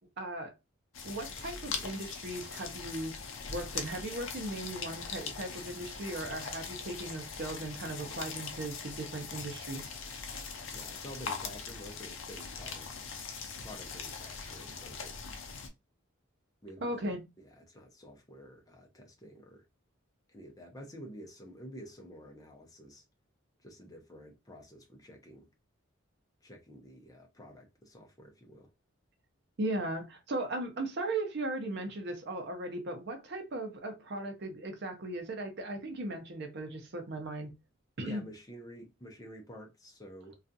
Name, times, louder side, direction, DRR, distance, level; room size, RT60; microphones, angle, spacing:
voice 1, 0.2-0.5 1.0-3.1 3.5-10.0 16.8-17.2 29.6-37.5 38.0-38.2, right 1 dB, 55° right, 0.6 m, -37 dB
sound 1, 0.9-15.7, left 5 dB, 70° left, 0.5 m, -41 dB
voice 2, 10.7-12.9 13.6-15.2 16.6-19.7 20.3-23.0 23.6-25.5 26.4-28.7 38.0-40.4, equal, 15° left, 0.6 m, -50 dB
2.4 x 2.3 x 2.6 m
head